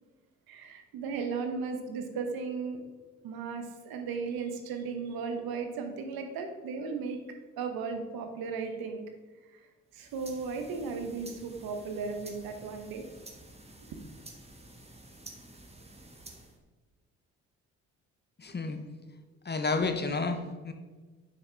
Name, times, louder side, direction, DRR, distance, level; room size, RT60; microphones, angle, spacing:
voice 1, 0.5-2.8 3.2-7.2 7.6-9.0 9.5-9.6 9.9-13.0, right 5 dB, 70° right, 6 dB, 1.0 m, -36 dB
sound 1, 9.9-16.6, right 2 dB, 15° right, 1.3 m, -51 dB
voice 2, 18.4-18.8 19.4-20.7, left 3 dB, 25° left, 7 dB, 0.9 m, -30 dB
6.6 x 5.8 x 3.5 m, 1.3 s
hypercardioid pair, 45°, 38 cm